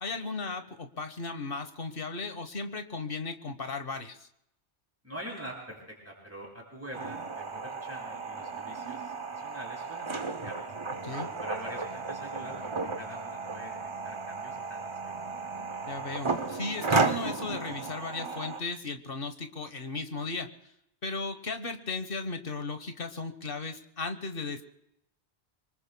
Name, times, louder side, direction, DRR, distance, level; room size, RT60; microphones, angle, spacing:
voice 1, 0.0-4.3 11.0-11.3 15.9-20.5 21.0-24.6, left 3 dB, 55° left, 8 dB, 1.4 m, -36 dB
voice 2, 5.0-10.7 11.3-13.7 14.0-15.2, equal, 10° right, -2 dB, 6.5 m, -44 dB
sound 1, 6.9-18.6, right 4 dB, 30° right, 0.8 m, -34 dB
26.5 x 24.5 x 2.2 m, 0.80 s
omnidirectional pair, 1.2 m